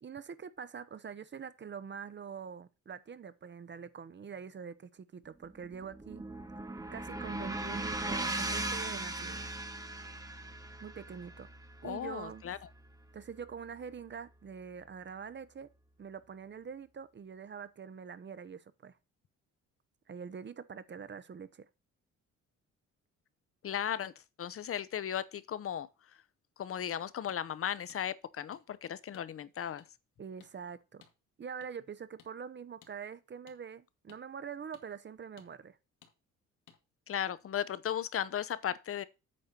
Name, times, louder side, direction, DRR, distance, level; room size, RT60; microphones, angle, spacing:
voice 1, 0.0-6.2 6.9-9.5 10.8-11.5 11.8-12.5 13.1-15.7 16.0-19.0 20.1-21.7 30.2-31.0 31.4-35.8, right 6 dB, 35° right, 0.8 m, -44 dB
sound 1, 5.4-13.7, right 2 dB, 10° right, 1.3 m, -39 dB
voice 2, 11.8-12.6 23.6-24.1 24.4-25.9 26.6-29.8 37.1-39.0, left 9 dB, 45° left, 0.8 m, -36 dB
sound 2, 27.3-27.4 27.9-28.0 28.5-28.6 29.1-29.3 29.8-29.9 30.4-30.5 31.0-31.1 31.6-31.7 32.2-32.3 32.8-32.9 33.5-33.6 34.1-34.2 34.7-34.9 35.4-35.5 36.0-36.1 36.7-36.8, left 8 dB, 80° left, 2.1 m, -59 dB
8.6 x 4.3 x 6.7 m
cardioid pair, 90°, 30 cm